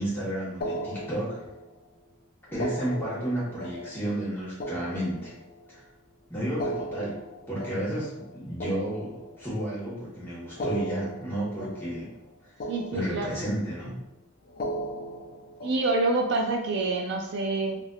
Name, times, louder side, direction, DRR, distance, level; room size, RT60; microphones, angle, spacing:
voice 1, 0.0-1.4 2.5-5.3 5.7-5.8 6.3-7.1 7.5-12.1 12.9-14.0, right 1 dB, 10° left, -9 dB, 1.1 m, -32 dB
sound 1, 0.6-1.8 2.5-5.8 6.5-9.8 10.5-12.3 12.6-13.7 14.5-16.3, equal, 45° left, 0.4 m, -37 dB
voice 2, 12.7-13.4 15.6-17.8, right 2 dB, 55° right, 2 dB, 0.3 m, -27 dB
3.3 x 2.4 x 2.3 m, 0.92 s
head